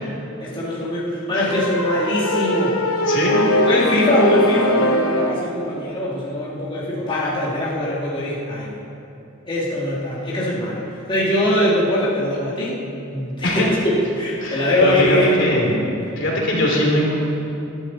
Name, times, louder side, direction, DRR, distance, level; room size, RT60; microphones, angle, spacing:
voice 1, 0.4-2.8 3.6-8.8 9.5-12.8 13.1-15.3, left 1 dB, 25° left, -7 dB, 2.6 m, -22 dB
sound 1, 1.5-5.5, left 1 dB, 85° left, 1.1 m, -21 dB
voice 2, 3.0-3.4 13.4-13.7 14.4-15.8 16.2-17.1, left 1 dB, 60° left, -2 dB, 3.2 m, -21 dB
21.5 x 12.5 x 4.2 m, 2.8 s
head